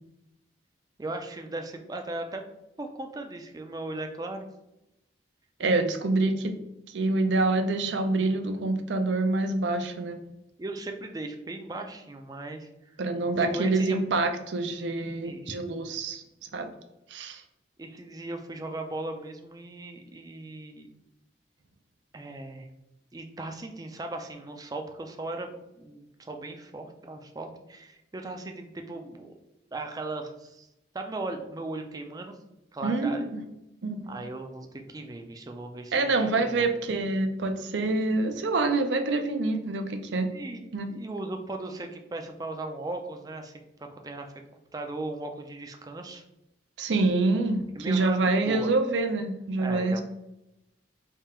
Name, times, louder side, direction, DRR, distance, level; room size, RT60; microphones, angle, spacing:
voice 1, 1.0-2.5 2.8-4.5 10.6-13.0 13.4-14.0 15.2-15.5 17.8-20.9 22.1-22.7 23.1-25.5 25.8-29.3 29.7-30.7 30.9-32.4 32.7-33.3 34.1-36.7 40.3-43.5 43.8-44.3 44.7-46.2 47.7-48.7 49.6-50.0, right 2 dB, 20° right, 4 dB, 0.4 m, -37 dB
voice 2, 5.6-6.5 6.9-10.2 13.0-16.2 16.5-16.7 17.1-17.4 32.8-33.4 33.8-34.2 35.9-40.3 40.7-40.9 46.8-50.0, right 2 dB, 80° right, 7 dB, 0.5 m, -26 dB
3.6 x 2.4 x 4.2 m, 0.90 s
head